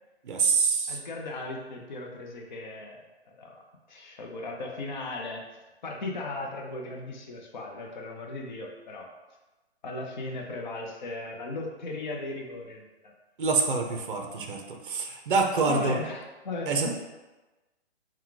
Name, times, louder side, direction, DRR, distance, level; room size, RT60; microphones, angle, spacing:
voice 1, 0.2-1.0 13.4-16.0 16.7-16.9, right 4 dB, 50° right, 3 dB, 0.6 m, -26 dB
voice 2, 0.9-3.0 3.3-3.6 3.9-5.4 5.8-9.1 9.8-13.1 15.7-16.9, left 2 dB, 45° left, 0 dB, 0.7 m, -37 dB
3.9 x 2.3 x 4.5 m, 1.1 s
hypercardioid pair, 170°, 33 cm